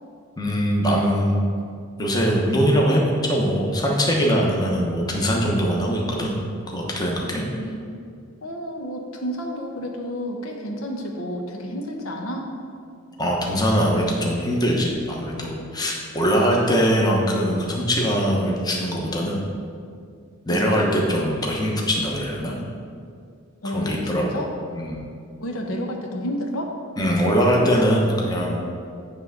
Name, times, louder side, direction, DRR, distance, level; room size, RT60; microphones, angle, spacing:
voice 1, 0.4-1.4 2.0-7.4 13.2-19.5 20.5-22.6 23.6-25.0 27.0-28.7, equal, 20° left, -2 dB, 1.0 m, -22 dB
voice 2, 7.4-7.9 8.4-12.5 20.5-20.7 23.6-24.5 25.4-26.8, equal, 85° left, 1 dB, 1.0 m, -30 dB
9.7 x 3.4 x 6.5 m, 2.3 s
head